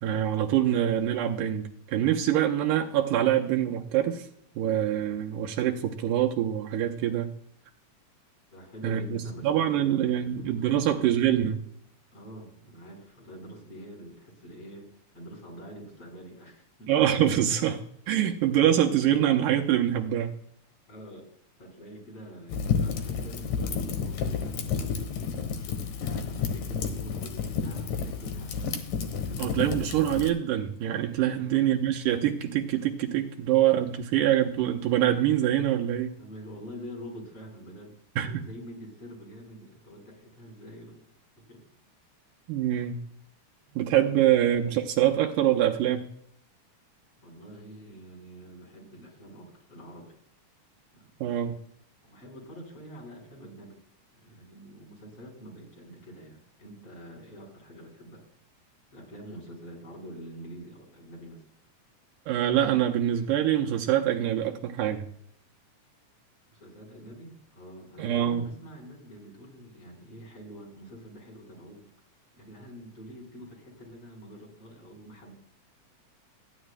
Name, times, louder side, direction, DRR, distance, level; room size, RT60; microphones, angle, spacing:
voice 1, 0.0-4.3 4.6-7.3 8.8-11.6 16.9-17.8 18.1-20.4 29.4-36.2 38.2-38.4 42.5-43.0 43.8-46.1 51.2-51.6 62.3-65.1 68.0-68.5, right 11 dB, 85° right, 1 dB, 2.4 m, -25 dB
voice 2, 8.5-11.5 12.1-14.9 15.1-16.9 20.9-21.3 21.6-28.7 29.1-30.0 31.3-31.5 36.2-41.0 41.5-41.6 43.7-43.9 47.2-50.1 50.9-51.4 52.0-53.8 54.1-58.2 58.9-61.4 66.5-71.8 72.3-75.3, equal, 45° left, -3 dB, 5.2 m, -46 dB
Fire, 22.5-30.3, left 6 dB, 85° left, 2.8 m, -31 dB
27.0 x 9.9 x 2.2 m, 0.69 s
omnidirectional pair, 3.7 m